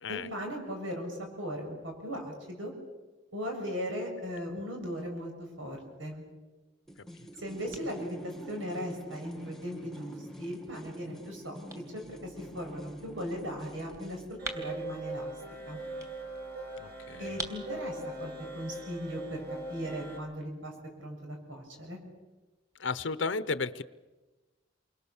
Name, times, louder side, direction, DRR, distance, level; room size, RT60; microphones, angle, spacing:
voice 1, 0.1-2.7 3.3-6.2 7.4-11.6 11.9-15.3 15.7-15.8 17.2-19.4 19.7-20.7 21.0-22.0, equal, 85° right, 2 dB, 7.1 m, -38 dB
sound 1, 6.8-20.3, right 1 dB, 15° right, 3.0 m, -49 dB
sound 2, 6.9-14.4, right 1 dB, ahead, 1.5 m, -47 dB
sound 3, 14.4-20.2, right 1 dB, 55° right, 7.5 m, -40 dB
voice 2, 16.8-17.4 22.8-23.8, left 4 dB, 70° left, 13 dB, 0.8 m, -33 dB
29.0 x 24.5 x 7.2 m, 1.2 s
head